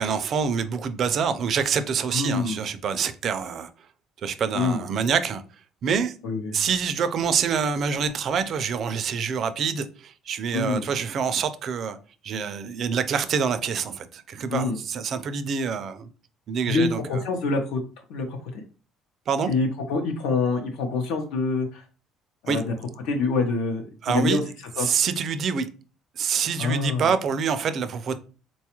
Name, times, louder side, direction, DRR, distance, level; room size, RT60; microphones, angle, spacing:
voice 1, 0.0-3.7 4.2-5.4 5.8-6.1 6.5-12.0 12.2-16.1 16.5-17.2 19.3-19.5 22.5-22.6 24.0-24.4 24.8-25.7 26.2-28.2, right 6 dB, 40° right, 0.3 m, -26 dB
voice 2, 2.1-2.6 4.5-4.8 6.2-6.5 10.5-10.8 14.5-14.8 16.7-17.8 18.1-18.5 19.5-21.8 22.4-22.7 23.0-24.4 24.8-24.9 26.6-27.1, left 3 dB, 80° left, 0.7 m, -26 dB
4.0 x 2.3 x 2.9 m
cardioid pair, 160°, 0 cm